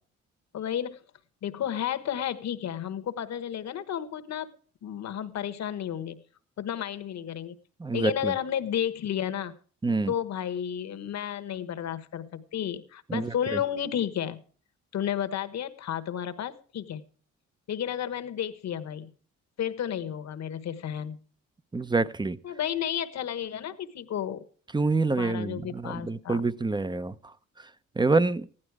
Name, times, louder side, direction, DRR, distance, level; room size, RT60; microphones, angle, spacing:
voice 1, 0.5-1.0 1.4-4.5 4.8-6.2 6.6-7.6 7.9-9.5 10.1-14.4 14.9-17.0 17.7-19.1 19.6-21.2 22.4-24.4 25.1-26.5, left 9 dB, 60° left, 11 dB, 1.3 m, -32 dB
voice 2, 7.8-8.3 9.8-10.1 13.1-13.6 21.7-22.4 24.7-27.1 28.0-28.5, right 3 dB, 15° right, 15 dB, 0.7 m, -26 dB
15.0 x 11.0 x 4.8 m, 0.43 s
cardioid pair, 90°, 30 cm